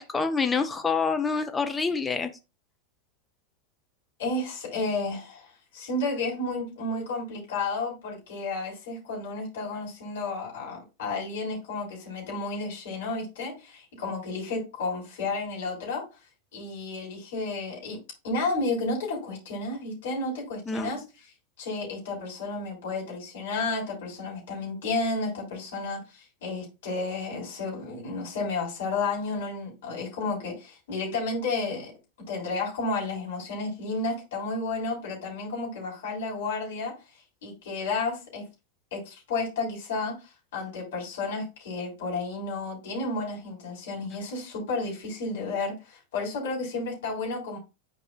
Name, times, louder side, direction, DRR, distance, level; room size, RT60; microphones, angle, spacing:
voice 1, 0.0-2.3 20.7-21.0, left 4 dB, 10° left, 0.9 m, -27 dB
voice 2, 4.2-16.0 16.5-21.3 21.6-31.9 32.3-36.9 37.4-38.4 38.9-40.2 40.5-47.6, left 3 dB, 60° left, 3.6 m, -32 dB
10.0 x 4.7 x 2.3 m
figure-of-eight pair, 90°, 0 cm